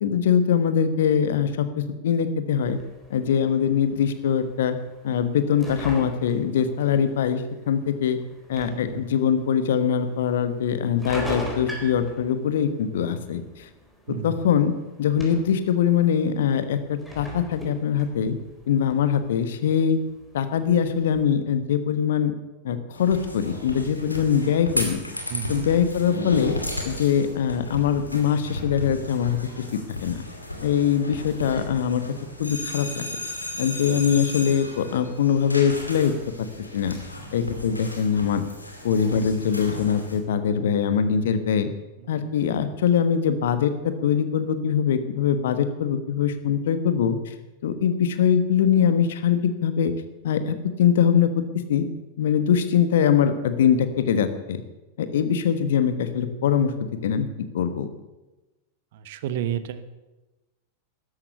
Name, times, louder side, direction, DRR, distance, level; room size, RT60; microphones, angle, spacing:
voice 1, 0.0-2.8 3.1-4.8 5.0-8.2 8.5-13.7 14.2-14.7 15.0-18.4 18.7-20.0 20.3-22.3 22.6-25.0 25.5-26.6 26.8-29.4 29.7-30.2 30.6-32.0 32.4-33.0 33.6-36.1 36.7-36.9 37.3-38.4 38.8-41.7 42.1-47.3 47.6-49.9 50.2-51.9 52.2-54.6 55.0-56.7 57.0-57.3 57.5-57.9, left 8 dB, 60° left, 10 dB, 1.3 m, -22 dB
sound 1, 2.6-21.2, equal, 5° left, 4.1 m, -42 dB
voice 2, 8.7-9.0 14.1-14.4 25.3-25.7 42.0-42.2 58.9-59.9, right 9 dB, 55° right, 13 dB, 1.0 m, -31 dB
sound 2, 22.9-40.2, left 1 dB, 85° left, 2.5 m, -35 dB
13.5 x 11.5 x 7.0 m, 1.1 s
figure-of-eight pair, 90°, 0 cm